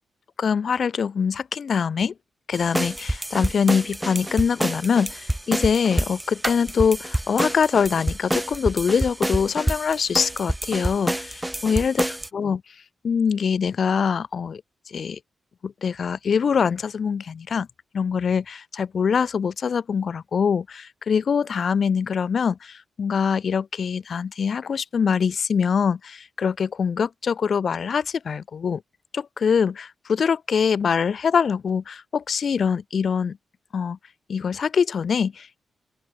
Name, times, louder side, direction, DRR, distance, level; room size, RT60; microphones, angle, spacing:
voice 1, 0.4-2.1 2.5-11.2 11.6-12.0 12.3-12.6 13.0-14.6 14.9-15.2 15.6-17.7 17.9-28.8 29.1-33.4 33.7-34.0 34.3-35.6, left 6 dB, 50° left, 0.6 m, -23 dB
sound 1, 2.5-12.3, right 1 dB, 5° right, 0.7 m, -28 dB
open air
wide cardioid pair, 135°, 0 cm